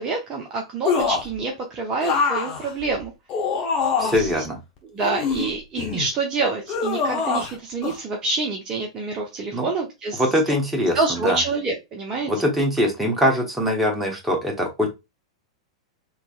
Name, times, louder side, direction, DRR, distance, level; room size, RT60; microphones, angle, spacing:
voice 1, 0.0-3.1 4.0-4.3 4.9-10.6 10.9-12.3, right 3 dB, 25° right, 1 dB, 0.7 m, -27 dB
sound 1, 0.8-1.4 2.0-4.3 5.0-6.1 6.7-7.5 7.8-8.0, left 5 dB, 30° left, 0.9 m, -24 dB
voice 2, 4.0-4.6 9.5-9.7 10.2-11.0 11.2-11.4 12.3-14.9, equal, 5° right, 0 dB, 1.2 m, -22 dB
3.9 x 3.0 x 2.3 m, 0.23 s
figure-of-eight pair, 95°, 3 cm